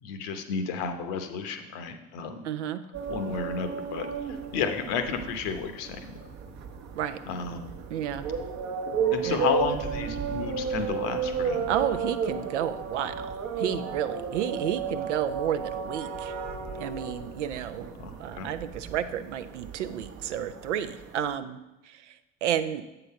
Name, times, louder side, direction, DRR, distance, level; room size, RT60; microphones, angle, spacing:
voice 1, 0.0-2.5 3.1-4.1 4.5-6.2 7.3-7.7 9.1-11.7 18.0-18.5, left 5 dB, 70° left, 7 dB, 0.9 m, -32 dB
voice 2, 2.4-2.8 7.0-7.2 7.9-8.2 9.2-9.5 11.7-16.3 16.7-17.9 18.2-21.6 21.8-22.1 22.4-22.8, right 9 dB, 85° right, 10 dB, 0.5 m, -31 dB
sound 1, 2.9-21.4, right 5 dB, 50° right, 0.9 m, -33 dB
7.8 x 3.9 x 5.6 m, 1.0 s
figure-of-eight pair, 50°, 35 cm